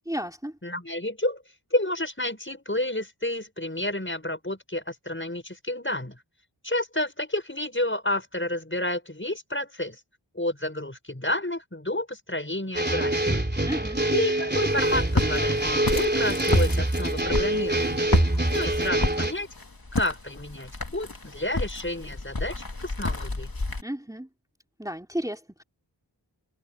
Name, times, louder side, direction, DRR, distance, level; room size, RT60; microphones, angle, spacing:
voice 1, 0.1-0.5 13.6-14.0 23.8-24.3 24.8-25.6, equal, 10° right, 3.2 m, -33 dB
voice 2, 0.6-1.4 1.7-6.2 6.6-10.0 10.3-13.2 14.1-18.2 18.5-19.5 19.9-23.5, left 1 dB, 30° left, 6.0 m, -30 dB
sound 1, 12.7-19.3, right 1 dB, 25° right, 3.6 m, -24 dB
Walk footsteps, 14.6-23.8, left 2 dB, 55° left, 2.3 m, -31 dB
wide cardioid pair, 45°, 42 cm